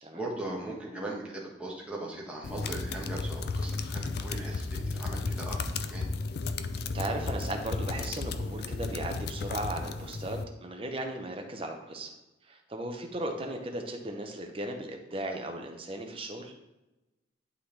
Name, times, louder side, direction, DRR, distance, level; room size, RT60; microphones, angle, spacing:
voice 1, 0.1-6.0, right 2 dB, 5° right, -4 dB, 1.4 m, -39 dB
teclado notebook corrido rapido, 2.4-10.4, left 3 dB, 55° left, 0.4 m, -34 dB
voice 2, 6.9-12.1 12.4-16.5, right 1 dB, 30° right, 3 dB, 0.9 m, -36 dB
11.0 x 3.8 x 3.3 m, 1.0 s
head